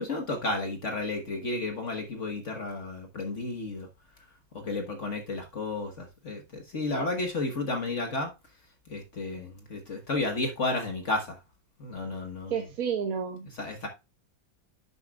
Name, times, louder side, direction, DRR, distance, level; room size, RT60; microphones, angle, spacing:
voice 1, 0.0-3.9 4.5-8.3 8.9-11.4 11.8-12.5 13.6-13.9, left 2 dB, 45° left, 1.3 m, -32 dB
voice 2, 12.5-13.5, right 7 dB, 55° right, 1.3 m, -30 dB
10.5 x 7.0 x 2.3 m
omnidirectional pair, 2.1 m